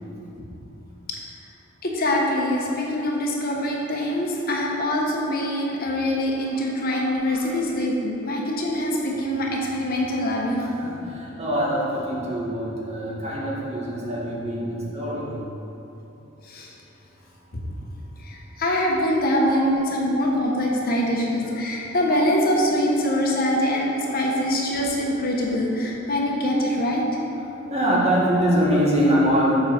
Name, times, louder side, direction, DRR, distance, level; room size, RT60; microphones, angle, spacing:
voice 1, 1.8-10.7 16.4-16.7 18.2-27.0, left 1 dB, 50° left, -2 dB, 1.1 m, -24 dB
voice 2, 10.8-15.3 19.4-19.6 24.1-24.2 27.7-29.5, equal, 35° right, -5 dB, 1.7 m, -24 dB
7.5 x 4.7 x 6.4 m, 3.0 s
head